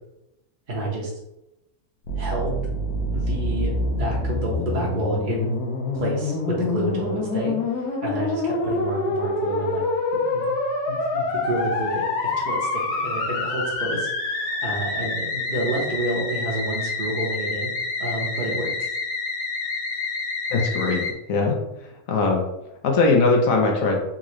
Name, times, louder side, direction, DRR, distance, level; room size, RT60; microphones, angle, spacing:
voice 1, 0.7-1.1 2.2-2.6 3.1-5.6 5.9-9.8 10.1-10.6 10.9-17.7 18.0-18.9, right 2 dB, 50° right, -4 dB, 0.6 m, -29 dB
Musical instrument, 2.0-21.1, left 2 dB, 85° left, 1.2 m, -27 dB
voice 2, 20.5-21.5 22.1-22.4 22.8-24.0, left 3 dB, 70° left, 1 dB, 1.0 m, -20 dB
3.6 x 2.5 x 3.0 m, 0.88 s
omnidirectional pair, 1.6 m